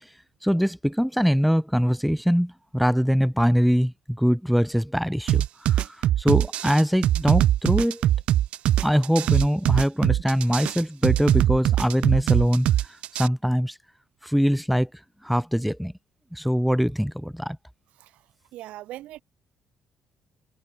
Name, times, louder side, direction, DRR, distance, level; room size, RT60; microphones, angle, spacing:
voice 1, 0.4-8.1 8.8-12.7 13.2-13.7 14.2-14.9 15.2-15.9 16.3-17.6, equal, ahead, 0.7 m, -23 dB
sound 1, 5.3-13.3, right 12 dB, 65° right, 0.5 m, -21 dB
voice 2, 18.5-19.2, right 15 dB, 90° right, 0.9 m, -39 dB
cardioid pair, 165°, 2 cm